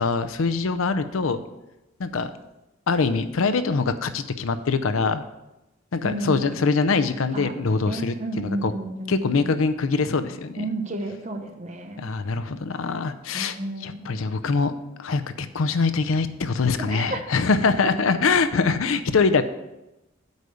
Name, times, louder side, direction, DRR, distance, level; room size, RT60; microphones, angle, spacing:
voice 1, 0.0-1.4 2.0-2.3 2.9-5.2 5.9-8.7 9.1-10.7 12.0-13.6 13.8-14.7 15.0-19.4, left 4 dB, 90° left, 11 dB, 0.6 m, -23 dB
voice 2, 6.0-6.5 7.3-9.5 10.6-12.1 13.3-14.2 16.8-17.2, right 2 dB, 35° right, 5 dB, 0.9 m, -32 dB
8.2 x 4.9 x 6.8 m, 0.96 s
head